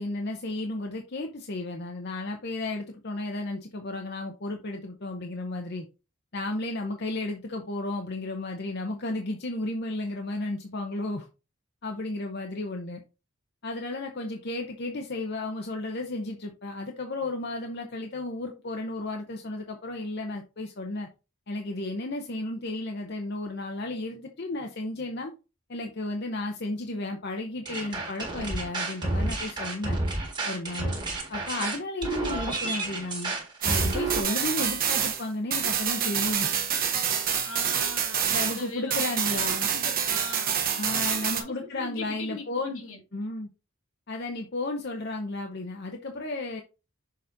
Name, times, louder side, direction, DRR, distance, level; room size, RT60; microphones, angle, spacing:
voice 1, 0.0-5.8 6.3-11.3 11.8-13.0 13.6-21.1 21.5-25.3 25.7-30.0 30.4-30.9 31.3-33.3 33.6-36.5 38.3-39.7 40.8-42.8 43.1-43.5 44.1-46.6, left 2 dB, 50° left, 0.8 m, -33 dB
sound 1, 27.7-34.2, right 2 dB, 20° right, 1.7 m, -30 dB
sound 2, 33.6-38.7 38.9-41.4, right 8 dB, 40° right, 1.2 m, -27 dB
voice 2, 37.4-39.3 39.7-40.6 41.1-43.0, left 2 dB, 75° left, 2.3 m, -41 dB
6.6 x 4.1 x 3.9 m
head